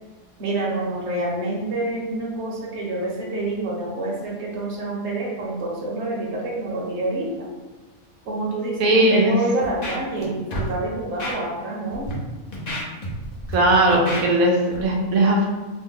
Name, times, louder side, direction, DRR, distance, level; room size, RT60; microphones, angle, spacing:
voice 1, 0.4-7.5 8.3-12.1, right 2 dB, 55° right, -3 dB, 1.1 m, -27 dB
voice 2, 8.8-9.4 13.5-15.5, right 1 dB, 80° right, 0 dB, 1.1 m, -18 dB
Scratching (performance technique), 9.6-10.2 10.5-10.7 11.2-11.3 11.9-12.1 12.5-13.5 13.9-14.2 14.7-14.8, left 1 dB, 45° left, 0.6 m, -30 dB
3.0 x 2.1 x 3.6 m, 1.3 s
omnidirectional pair, 1.5 m